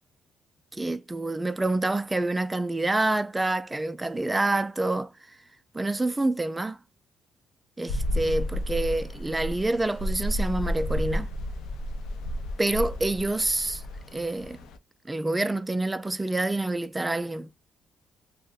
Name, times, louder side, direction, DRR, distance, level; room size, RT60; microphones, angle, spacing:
voice 1, 0.7-5.1 5.7-6.8 7.8-11.3 12.6-13.8 14.1-14.6 15.0-17.5, right 2 dB, 15° right, 0.4 m, -27 dB
sound 1, 7.9-14.8, left 1 dB, 80° left, 0.5 m, -31 dB
2.6 x 2.1 x 3.8 m
cardioid pair, 95°, 0 cm